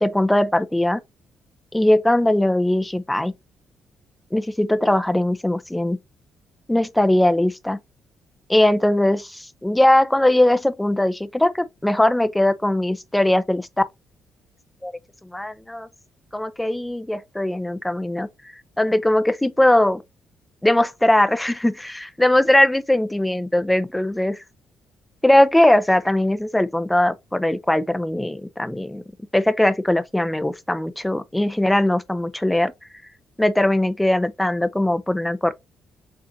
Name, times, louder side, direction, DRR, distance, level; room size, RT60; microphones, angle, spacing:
voice 1, 0.0-1.0 1.7-3.3 4.3-6.0 6.7-7.8 8.5-13.7 14.8-15.0 15.3-15.9 16.3-18.3 18.8-20.0 20.6-24.4 25.2-29.0 29.3-32.7 33.4-35.5, left 1 dB, 10° left, 0.5 m, -20 dB
6.9 x 2.4 x 2.7 m
cardioid pair, 90°, 0 cm